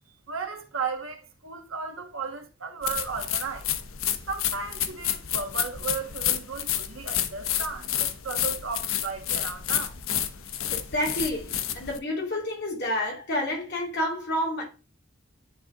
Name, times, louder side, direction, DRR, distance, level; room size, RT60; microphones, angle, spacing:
voice 1, 0.3-3.7 4.3-10.0, right 5 dB, 85° right, 1.4 m, -35 dB
sound 1, 2.8-12.0, left 10 dB, 85° left, 0.8 m, -30 dB
voice 2, 10.7-14.6, left 1 dB, 55° left, 2.4 m, -29 dB
9.6 x 3.8 x 3.6 m
head